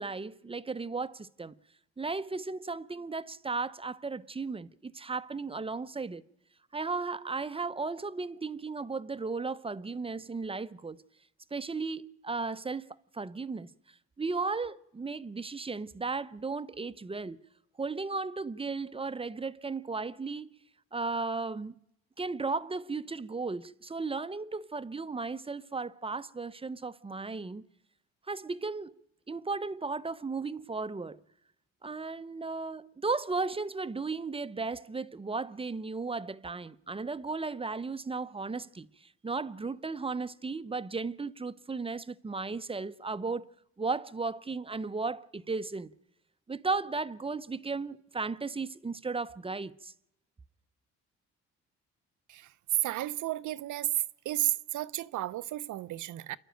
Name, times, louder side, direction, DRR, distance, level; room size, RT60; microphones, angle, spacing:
voice 1, 0.0-1.6 2.0-6.2 6.7-11.0 11.5-12.9 13.1-13.7 14.2-17.4 17.8-20.5 20.9-21.8 22.2-27.7 28.3-31.2 31.8-43.5 43.8-45.9 46.5-49.9, right 4 dB, 20° right, 0.8 m, -35 dB
voice 2, 52.8-53.9 54.2-56.4, right 15 dB, 75° right, 0.8 m, -33 dB
28.0 x 11.5 x 9.1 m
cardioid pair, 90°, 30 cm